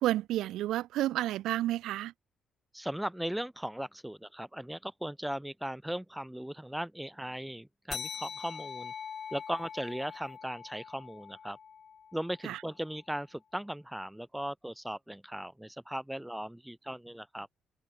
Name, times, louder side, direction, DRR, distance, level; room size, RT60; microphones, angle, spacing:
voice 1, 0.0-2.1 12.4-12.6, right 14 dB, 85° right, 1.5 m, -30 dB
voice 2, 2.7-8.9 9.3-11.6 12.1-17.5, right 1 dB, 5° right, 6.4 m, -38 dB
sound 1, 7.9-12.8, left 7 dB, 50° left, 4.2 m, -43 dB
cardioid pair, 90°, 0 cm